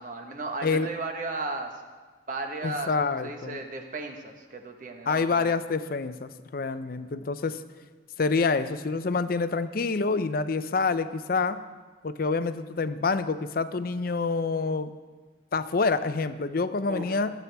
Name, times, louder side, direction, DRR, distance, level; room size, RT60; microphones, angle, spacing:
voice 1, 0.0-1.8 2.3-5.5 16.9-17.2, right 2 dB, 40° right, 3 dB, 1.2 m, -35 dB
voice 2, 2.6-3.6 5.1-7.6 8.2-11.6 12.0-14.9 15.5-17.3, left 4 dB, 50° left, 12 dB, 0.5 m, -27 dB
19.5 x 8.2 x 3.4 m, 1.4 s
head